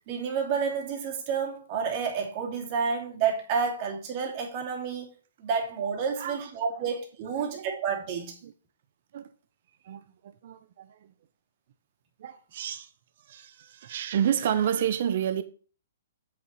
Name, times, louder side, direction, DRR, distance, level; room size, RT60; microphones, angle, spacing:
voice 1, 0.1-5.1 5.4-8.4, right 6 dB, 35° right, 2.7 m, -30 dB
voice 2, 6.2-6.5 6.8-6.9 7.3-7.8 8.4-8.5 9.1-9.3 9.8-11.1 12.2-12.9 13.3-15.4, right 9 dB, 55° right, 0.8 m, -30 dB
7.6 x 7.0 x 4.5 m
hypercardioid pair, 155°, 0 cm